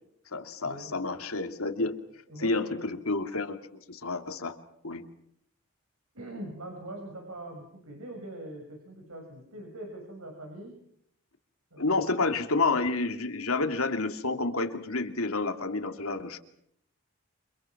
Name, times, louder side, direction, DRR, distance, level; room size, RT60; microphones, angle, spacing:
voice 1, 0.3-2.0 2.4-3.6 3.9-4.6 4.8-5.1 11.8-16.4, left 3 dB, 80° left, 6 dB, 2.6 m, -29 dB
voice 2, 2.3-2.8 6.1-10.7 11.7-12.3, right 1 dB, 80° right, 2 dB, 6.4 m, -42 dB
29.5 x 26.5 x 6.0 m, 0.71 s
head